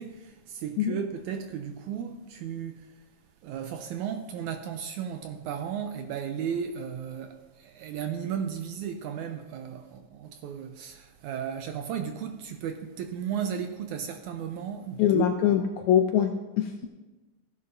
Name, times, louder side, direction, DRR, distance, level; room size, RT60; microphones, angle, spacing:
voice 1, 0.0-2.9 3.4-15.3, right 8 dB, 80° right, 1.8 m, -35 dB
voice 2, 15.0-16.9, left 9 dB, 80° left, 1.7 m, -24 dB
15.0 x 11.0 x 2.6 m
omnidirectional pair, 3.8 m